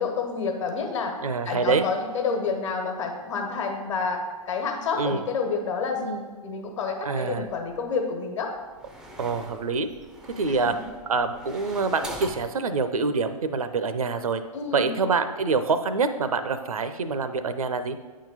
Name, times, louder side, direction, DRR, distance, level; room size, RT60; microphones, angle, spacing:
voice 1, 0.0-1.1 1.4-8.5 10.5-10.8 14.5-14.9, left 5 dB, 55° left, 3 dB, 1.3 m, -29 dB
voice 2, 1.2-1.8 5.0-5.2 7.0-7.5 9.2-9.9 10.4-10.7 11.1-14.4 14.7-18.0, right 4 dB, 65° right, 11 dB, 0.6 m, -26 dB
sound 1, 7.6-7.9 8.6-12.5, equal, 5° right, 0.4 m, -42 dB
8.7 x 3.8 x 5.0 m, 1.4 s
figure-of-eight pair, 115°, 19 cm